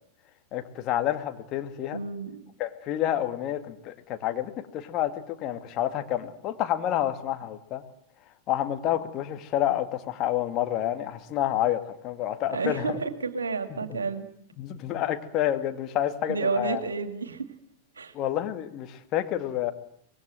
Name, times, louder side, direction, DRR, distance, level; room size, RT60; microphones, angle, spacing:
voice 1, 0.5-2.0 2.6-7.8 8.5-13.0 13.7-13.8 14.6-16.8 18.1-19.7, left 12 dB, 35° left, 7 dB, 2.2 m, -29 dB
voice 2, 1.9-2.4 12.5-14.3 16.3-17.5 18.0-18.1, right 4 dB, 75° right, 10 dB, 2.4 m, -30 dB
25.0 x 21.5 x 7.8 m, 0.66 s
figure-of-eight pair, 90°, 0 cm